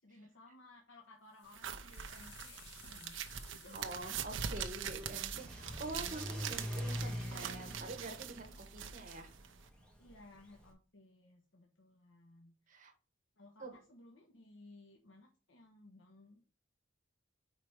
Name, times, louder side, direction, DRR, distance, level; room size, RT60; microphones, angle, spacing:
voice 1, 0.0-2.6 2.9-3.2 3.5-4.2 8.5-8.6 8.8-9.0 10.0-12.8 13.4-16.4, left 2 dB, 85° left, 1 dB, 1.1 m, -59 dB
sound 1, 1.3-6.1, left 4 dB, 60° left, 2.4 m, -60 dB
sound 2, 1.5-9.7, right 8 dB, 80° right, 0.7 m, -43 dB
voice 2, 3.7-9.3 12.7-12.9 13.6-13.8, right 2 dB, 45° right, 4 dB, 1.5 m, -46 dB
Car / Accelerating revving vroom, 4.0-10.7, equal, 5° left, 1.7 m, -45 dB
5.0 x 4.4 x 5.0 m, 0.38 s
head